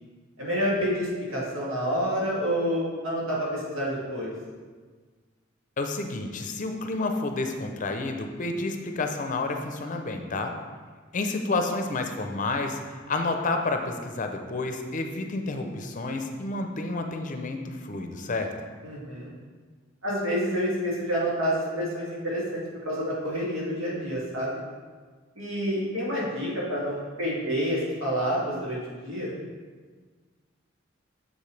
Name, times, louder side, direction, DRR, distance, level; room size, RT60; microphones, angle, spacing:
voice 1, 0.4-4.3 18.8-19.3 20.0-24.6 25.4-29.3, equal, 85° right, -5 dB, 2.3 m, -28 dB
voice 2, 5.8-10.5 11.1-18.5, left 3 dB, 40° left, 4 dB, 0.6 m, -30 dB
7.3 x 6.8 x 3.3 m, 1.5 s
head